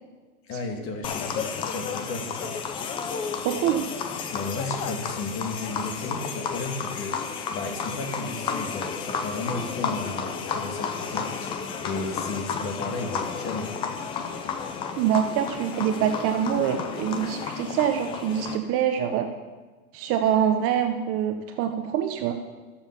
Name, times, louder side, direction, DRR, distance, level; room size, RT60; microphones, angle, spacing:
voice 1, 0.5-2.5 4.3-11.5 11.8-13.7, left 3 dB, 30° left, 4 dB, 1.7 m, -34 dB
sound 1, 1.0-18.6, left 6 dB, 15° left, 0.3 m, -32 dB
voice 2, 3.4-3.9 15.0-19.3 19.9-22.4, right 9 dB, 30° right, 6 dB, 0.7 m, -25 dB
13.5 x 7.2 x 5.6 m, 1.3 s
hypercardioid pair, 125°, 43 cm